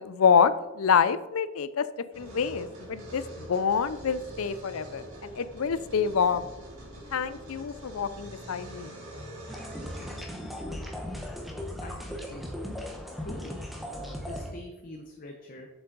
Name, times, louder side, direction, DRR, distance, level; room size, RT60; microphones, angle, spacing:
voice 1, 0.0-1.9 2.2-6.5 7.1-9.0, left 6 dB, 75° left, 15 dB, 0.5 m, -26 dB
sound 1, 2.1-10.2, right 1 dB, 85° right, 3.0 m, -44 dB
sound 2, 9.5-14.5, equal, ahead, 0.9 m, -37 dB
voice 2, 11.8-12.5 13.2-15.7, left 1 dB, 40° left, 2 dB, 0.7 m, -44 dB
7.3 x 7.0 x 3.9 m, 1.0 s
head